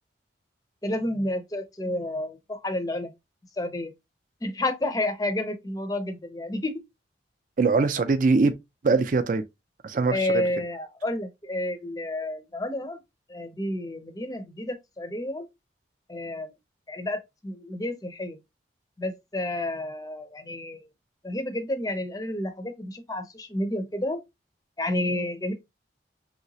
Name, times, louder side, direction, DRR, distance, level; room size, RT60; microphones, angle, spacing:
voice 1, 0.8-3.1 3.6-3.9 4.4-6.8 10.1-13.0 13.3-15.5 16.1-16.5 16.9-18.4 19.0-20.8 21.2-24.2 24.8-25.5, left 1 dB, 20° left, 0.5 m, -30 dB
voice 2, 7.6-8.5 8.8-9.4 9.8-10.4, right 4 dB, 45° right, 0.4 m, -22 dB
3.1 x 2.9 x 2.7 m
head